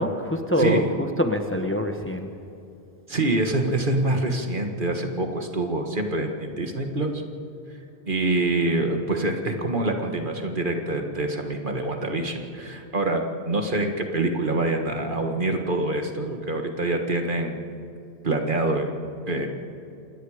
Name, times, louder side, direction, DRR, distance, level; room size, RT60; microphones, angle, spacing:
voice 1, 0.0-2.3, left 1 dB, 10° left, 5 dB, 1.1 m, -25 dB
voice 2, 0.6-0.9 3.1-7.2 8.1-17.6 18.2-18.9 19.3-19.5, right 2 dB, 50° right, 4 dB, 1.9 m, -25 dB
27.5 x 20.0 x 5.0 m, 2.7 s
omnidirectional pair, 1.1 m